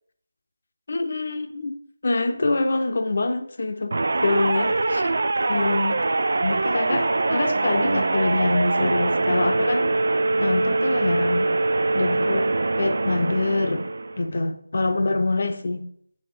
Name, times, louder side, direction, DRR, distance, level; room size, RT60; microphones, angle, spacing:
voice 1, 0.9-1.8 2.0-5.1 5.5-6.0 6.4-10.0 10.4-11.5 11.9-12.5 12.8-15.8, left 2 dB, 45° left, 8 dB, 0.8 m, -25 dB
sound 1, 3.9-14.3, right 2 dB, 50° right, 0.4 m, -23 dB
7.8 x 4.3 x 6.6 m, 0.68 s
figure-of-eight pair, 160°, 0 cm